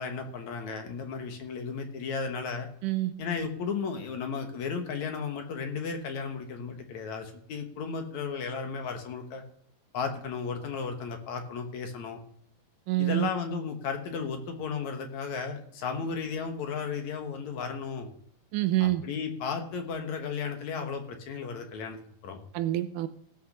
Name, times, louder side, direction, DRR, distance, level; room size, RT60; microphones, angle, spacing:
voice 1, 0.0-2.7 3.2-9.4 9.9-12.2 13.0-18.1 18.8-22.4, left 5 dB, 60° left, 5 dB, 2.5 m, -34 dB
voice 2, 2.8-3.1 12.9-13.3 18.5-19.0 22.5-23.1, right 16 dB, 75° right, 11 dB, 2.1 m, -26 dB
17.0 x 5.8 x 6.6 m, 0.66 s
omnidirectional pair, 4.0 m